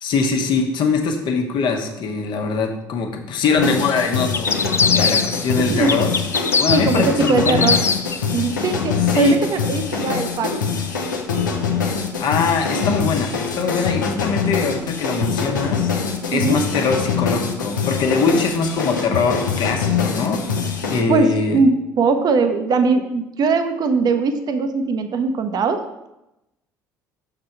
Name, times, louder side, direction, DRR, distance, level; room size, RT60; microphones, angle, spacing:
voice 1, 0.0-4.5 4.9-6.1 6.6-7.7 9.1-9.4 12.2-15.9 16.3-20.5 20.9-21.6, left 4 dB, 50° left, 3 dB, 1.1 m, -22 dB
sound 1, 3.6-21.0, left 6 dB, 85° left, 0.7 m, -24 dB
sound 2, 4.3-5.5 5.9-8.2, left 5 dB, 25° left, 0.5 m, -21 dB
voice 2, 5.5-6.1 6.7-7.8 8.3-10.6 16.3-16.6 21.1-26.1, right 4 dB, 45° right, 8 dB, 0.7 m, -20 dB
6.5 x 3.9 x 5.6 m, 0.91 s
figure-of-eight pair, 55°, 10 cm